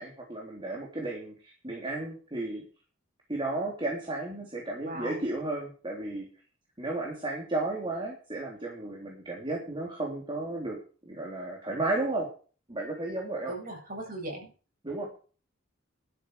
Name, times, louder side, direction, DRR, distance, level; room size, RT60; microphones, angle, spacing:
voice 1, 0.0-2.6 3.3-6.3 6.8-10.8 11.0-12.3 12.7-13.5 14.8-15.1, right 2 dB, 25° right, -1 dB, 3.5 m, -33 dB
voice 2, 4.8-5.2 13.5-14.5, right 1 dB, 45° right, 0 dB, 7.7 m, -38 dB
12.5 x 11.5 x 4.9 m, 0.38 s
head